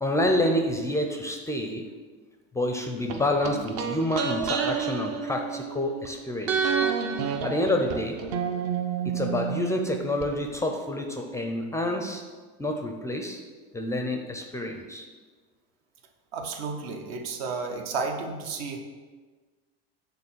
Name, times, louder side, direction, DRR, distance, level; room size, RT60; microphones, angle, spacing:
voice 1, 0.0-1.8 2.5-6.8 7.4-8.2 9.0-12.2 12.6-13.4 13.7-15.1, left 1 dB, 10° left, 3 dB, 0.4 m, -28 dB
sound 1, 3.1-6.1 6.5-10.3 10.5-10.6, right 6 dB, 50° right, 0.8 m, -29 dB
voice 2, 16.3-18.8, right 4 dB, 70° right, 4 dB, 1.1 m, -32 dB
6.7 x 3.4 x 6.0 m, 1.4 s
supercardioid pair, 130°, 31 cm